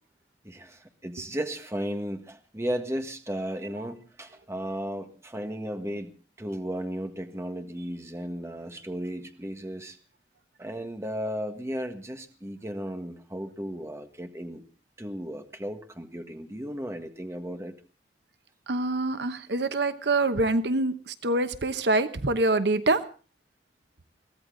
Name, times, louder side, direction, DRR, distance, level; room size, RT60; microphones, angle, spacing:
voice 1, 0.4-6.1 6.4-10.0 10.6-14.6 15.0-17.7, equal, 15° right, 6 dB, 1.6 m, -35 dB
voice 2, 18.7-23.0, right 2 dB, 70° right, 11 dB, 1.0 m, -25 dB
23.0 x 15.5 x 3.9 m, 0.37 s
head